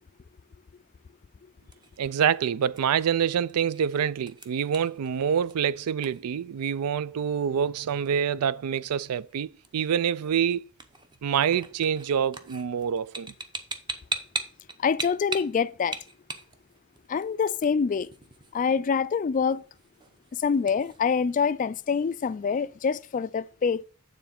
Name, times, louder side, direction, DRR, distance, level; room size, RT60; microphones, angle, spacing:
sound 1, 1.4-21.0, right 3 dB, 20° right, 0.7 m, -42 dB
voice 1, 2.0-10.6 11.2-13.3, right 8 dB, 85° right, 0.4 m, -26 dB
voice 2, 14.8-16.0 17.1-18.1 18.5-19.6 20.3-23.8, left 6 dB, 35° left, 0.3 m, -25 dB
9.3 x 3.8 x 5.8 m
head